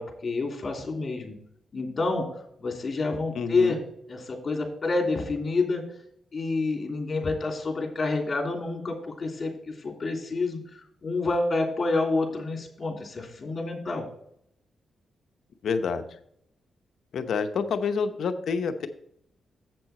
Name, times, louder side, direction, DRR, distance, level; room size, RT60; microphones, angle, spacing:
voice 1, 0.0-1.4 1.7-2.3 2.6-3.8 4.1-5.8 6.3-10.6 11.0-14.0, left 3 dB, 40° left, 2 dB, 2.9 m, -28 dB
voice 2, 3.3-3.8 15.6-16.0 17.1-18.9, left 5 dB, 70° left, 8 dB, 0.8 m, -28 dB
7.8 x 7.7 x 4.3 m, 0.71 s
cardioid pair, 90°, 0 cm